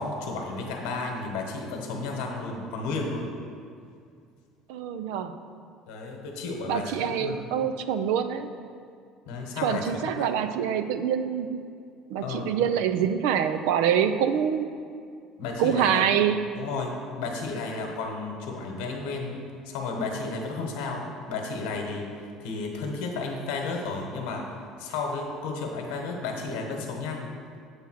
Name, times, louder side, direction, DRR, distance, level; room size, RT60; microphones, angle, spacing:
voice 1, 0.0-3.3 5.9-7.4 9.3-10.3 12.2-12.5 15.4-16.0 16.5-19.3 19.6-22.1 22.4-24.5 24.8-27.3, left 3 dB, 90° left, 2 dB, 1.2 m, -32 dB
voice 2, 4.7-5.4 6.7-8.5 9.6-11.6 12.1-14.7 15.6-16.4, right 8 dB, 85° right, 10 dB, 0.4 m, -25 dB
8.1 x 3.5 x 6.3 m, 2.3 s
cardioid pair, 165°, 0 cm